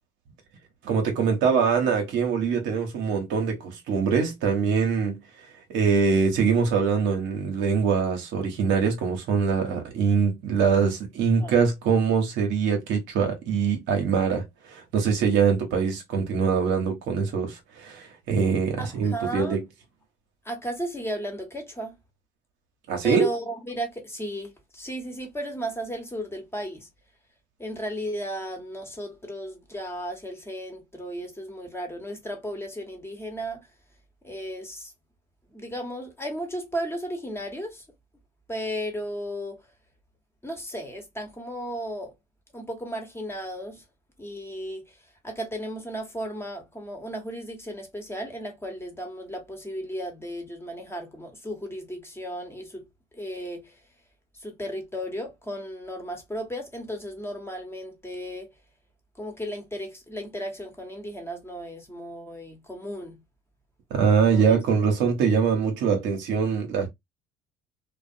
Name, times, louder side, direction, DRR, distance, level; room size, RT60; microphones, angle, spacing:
voice 1, 0.8-5.2 5.7-19.6 22.9-23.3 63.9-66.9, right 6 dB, 70° right, 0.9 m, -23 dB
voice 2, 18.8-19.6 20.4-22.0 23.0-26.9 27.6-33.7 34.2-34.9 35.5-37.8 38.5-39.6 40.4-42.1 42.5-43.8 44.2-45.0 45.2-52.8 53.1-53.8 54.4-58.5 59.2-63.2 64.2-64.6, equal, 10° left, 1.0 m, -35 dB
2.4 x 2.1 x 2.5 m
supercardioid pair, 70°, 20 cm